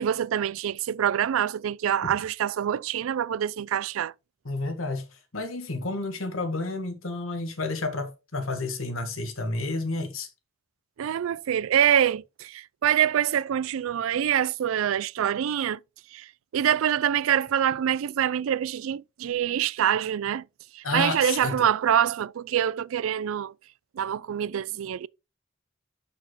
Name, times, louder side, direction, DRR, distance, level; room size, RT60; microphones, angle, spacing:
voice 1, 0.0-4.1 11.0-15.8 16.1-16.3 16.5-20.4 20.7-23.5 24.0-25.1, right 9 dB, 85° right, 0.3 m, -25 dB
voice 2, 4.4-10.3 20.8-21.5, left 2 dB, 85° left, 1.7 m, -31 dB
6.4 x 6.1 x 3.9 m
head